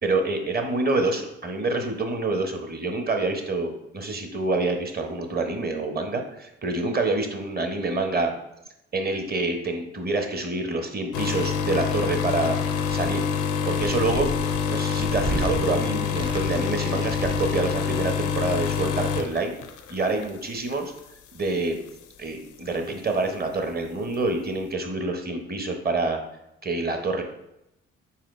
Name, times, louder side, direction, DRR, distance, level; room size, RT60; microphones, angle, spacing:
voice 1, 0.0-8.3 8.9-12.6 12.9-13.3 13.6-14.3 14.7-19.6 19.9-20.9 21.3-21.8 22.2-26.2 26.6-27.2, right 3 dB, 30° right, 4 dB, 0.9 m, -27 dB
sound 1, 11.1-20.3 20.7-21.0 21.9-22.0, left 7 dB, 80° left, 0.5 m, -26 dB
sound 2, 12.7-13.3 13.7-15.6 16.1-16.7 17.0-17.7, right 2 dB, 15° right, 0.4 m, -34 dB
4.7 x 4.2 x 2.5 m, 0.86 s
supercardioid pair, 50°, 29 cm